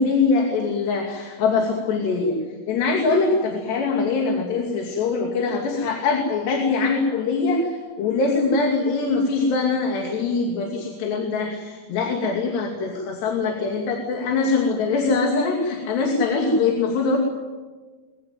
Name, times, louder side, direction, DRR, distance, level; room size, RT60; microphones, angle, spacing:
voice 1, 0.0-2.4 2.7-17.2, left 4 dB, 90° left, 1 dB, 4.7 m, -23 dB
23.5 x 22.0 x 9.3 m, 1.3 s
omnidirectional pair, 4.7 m